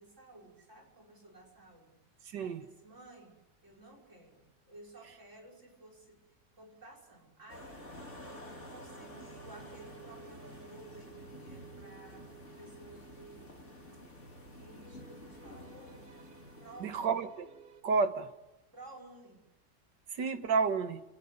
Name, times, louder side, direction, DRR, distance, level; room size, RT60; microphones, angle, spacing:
voice 1, 0.0-2.0 2.4-6.3 6.5-8.0 8.7-13.6 14.5-16.3 16.6-17.1 18.7-19.4, right 2 dB, 40° right, 6.0 m, -54 dB
voice 2, 2.3-2.6 16.8-17.5 17.8-18.3 20.1-21.0, right 5 dB, 80° right, 2.0 m, -30 dB
sound 1, 7.5-17.1, left 1 dB, 40° left, 4.1 m, -50 dB
sound 2, 8.2-17.8, right 8 dB, 60° right, 1.9 m, -56 dB
29.0 x 18.5 x 9.8 m
omnidirectional pair, 1.9 m